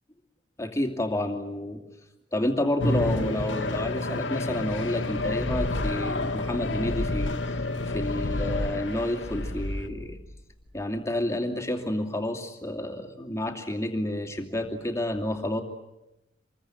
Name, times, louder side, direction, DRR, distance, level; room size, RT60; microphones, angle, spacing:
voice 1, 0.6-1.8 2.3-7.4 7.9-10.2 10.7-15.6, left 1 dB, 15° left, 3 dB, 2.6 m, -30 dB
sound 1, 2.8-9.8, left 2 dB, 85° left, 1.8 m, -30 dB
sound 2, 5.1-10.8, left 1 dB, 60° left, 1.3 m, -34 dB
26.5 x 22.0 x 9.1 m, 0.94 s
head